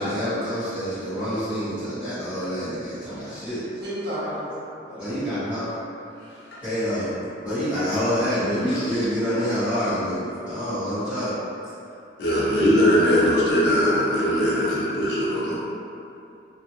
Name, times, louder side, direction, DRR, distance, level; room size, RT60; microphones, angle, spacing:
voice 1, 0.0-3.6 5.0-5.7 6.6-7.1 7.4-11.3, equal, 5° right, -16 dB, 1.2 m, -26 dB
voice 2, 3.0-5.0 8.6-8.8 9.4-9.6, equal, 65° right, -12 dB, 1.2 m, -35 dB
voice 3, 12.2-15.6, equal, 65° left, -7 dB, 0.6 m, -20 dB
2.4 x 2.1 x 2.9 m, 2.6 s
head